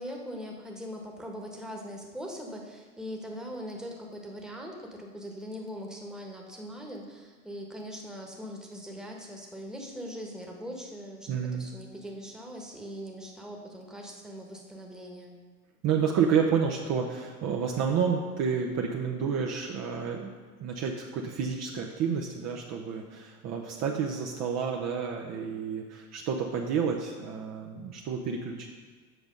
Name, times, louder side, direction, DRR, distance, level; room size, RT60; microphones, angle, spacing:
voice 1, 0.0-15.4, equal, ahead, 0 dB, 1.3 m, -41 dB
voice 2, 11.3-11.7 15.8-20.3 20.6-28.7, right 6 dB, 35° right, 0 dB, 0.8 m, -30 dB
8.0 x 5.8 x 5.3 m, 1.5 s
hypercardioid pair, 85°, 45 cm